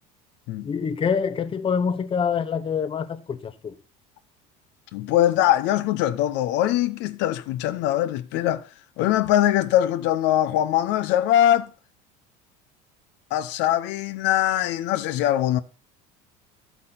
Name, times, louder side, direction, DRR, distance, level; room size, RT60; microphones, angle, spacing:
voice 1, 0.6-3.7, left 6 dB, 25° left, 0.9 m, -26 dB
voice 2, 4.9-8.6 9.0-11.7 13.3-15.6, left 12 dB, 65° left, 0.8 m, -22 dB
12.0 x 8.2 x 5.7 m
supercardioid pair, 100°, 20 cm